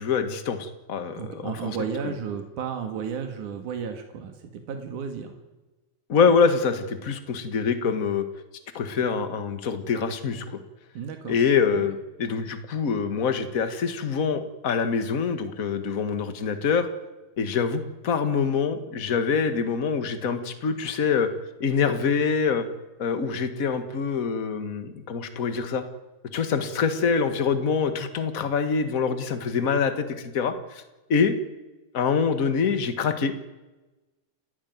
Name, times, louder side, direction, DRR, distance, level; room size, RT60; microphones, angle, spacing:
voice 1, 0.0-1.8 2.0-2.1 6.1-8.2 8.7-10.6 11.3-16.9 17.4-21.3 21.6-22.6 23.0-25.8 26.3-30.0 30.3-30.8 31.1-31.3 31.9-33.3, left 5 dB, 35° left, 9 dB, 1.6 m, -25 dB
voice 2, 1.1-5.4 10.9-11.4 11.7-11.9, right 6 dB, 85° right, 6 dB, 3.3 m, -33 dB
29.5 x 13.5 x 9.5 m, 1.1 s
omnidirectional pair, 3.4 m